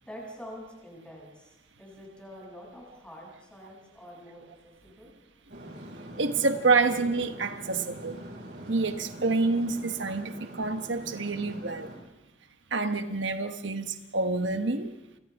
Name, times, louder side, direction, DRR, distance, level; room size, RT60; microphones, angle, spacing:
voice 1, 0.0-5.1, equal, 5° left, -3 dB, 7.3 m, -46 dB
sound 1, 5.5-12.0, right 1 dB, 65° right, 6.1 m, -43 dB
voice 2, 6.2-8.2 8.7-11.9 12.7-15.0, right 3 dB, 80° right, 7 dB, 1.2 m, -27 dB
29.5 x 24.5 x 3.6 m, 0.93 s
head